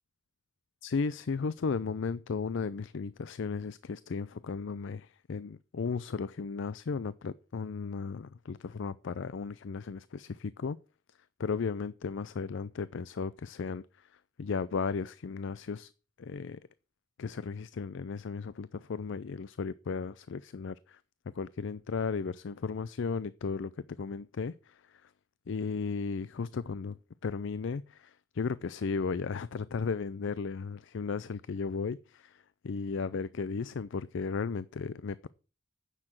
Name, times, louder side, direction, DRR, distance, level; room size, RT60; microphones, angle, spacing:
voice 1, 0.8-10.8 11.4-14.1 14.4-15.9 16.2-16.6 17.2-21.0 21.3-23.7 24.0-25.1 25.5-27.0 27.2-35.3, left 5 dB, 65° left, 0.5 m, -35 dB
9.8 x 6.8 x 7.4 m
head